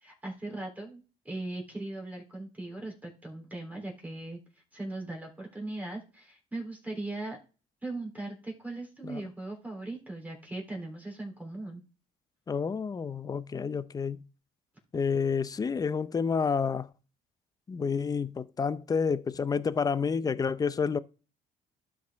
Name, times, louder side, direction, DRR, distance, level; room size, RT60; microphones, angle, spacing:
voice 1, 0.0-4.4 4.7-7.4 7.8-11.8, right 2 dB, 10° right, 3.4 m, -39 dB
voice 2, 12.5-14.2 14.9-16.9 17.7-21.0, left 5 dB, 20° left, 0.5 m, -29 dB
12.0 x 4.7 x 3.6 m
cardioid pair, 110°, 17 cm